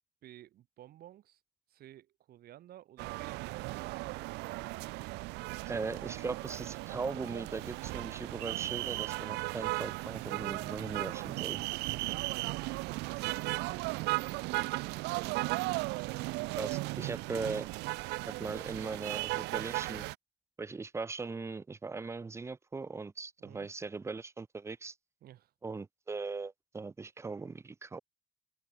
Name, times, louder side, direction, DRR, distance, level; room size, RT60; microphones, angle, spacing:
voice 1, 0.2-1.4 1.7-4.0 11.8-13.6 14.4-15.3 23.4-23.7 25.2-25.5, right 13 dB, 65° right, 2.5 m, -55 dB
sound 1, 3.0-20.1, right 23 dB, 90° right, 0.5 m, -36 dB
voice 2, 5.6-11.6 16.6-17.7 18.3-20.1 20.6-24.9 25.6-28.0, right 4 dB, 15° right, 0.6 m, -39 dB
open air
cardioid pair, 110°, 17 cm